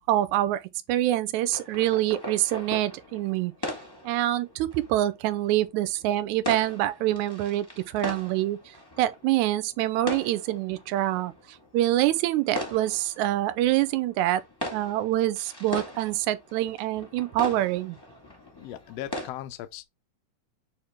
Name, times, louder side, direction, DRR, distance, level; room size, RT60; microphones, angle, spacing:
voice 1, 0.1-0.6 0.9-3.5 4.0-7.7 7.9-8.6 9.0-14.4 14.7-18.0, right 14 dB, 80° right, 1.8 m, -25 dB
sound 1, 1.4-19.3, left 1 dB, 15° left, 0.8 m, -40 dB
voice 2, 18.5-19.8, left 13 dB, 85° left, 1.4 m, -38 dB
8.6 x 3.0 x 3.7 m
omnidirectional pair, 3.9 m